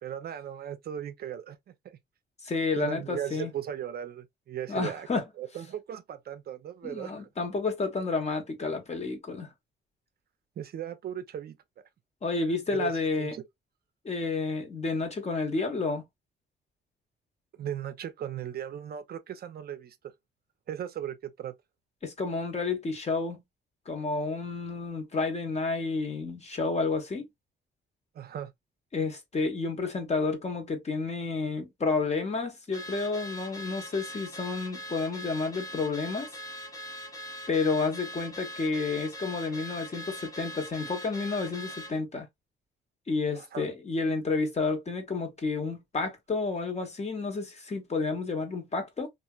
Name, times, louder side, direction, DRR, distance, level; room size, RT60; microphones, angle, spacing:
voice 1, 0.0-1.6 1.8-2.0 2.8-5.1 5.4-7.3 10.6-11.6 12.7-12.9 13.2-13.4 17.6-20.0 20.7-21.5 28.1-28.5 43.3-43.7, right 9 dB, 50° right, 0.4 m, -37 dB
voice 2, 2.4-3.5 4.7-5.2 6.8-9.5 12.2-13.4 14.0-16.0 22.0-23.4 23.9-27.2 28.9-36.3 37.5-42.3 43.1-49.1, left 3 dB, 35° left, 1.0 m, -30 dB
Car / Alarm, 32.7-42.0, equal, 15° left, 0.7 m, -41 dB
2.8 x 2.4 x 2.2 m
cardioid pair, 90°, 20 cm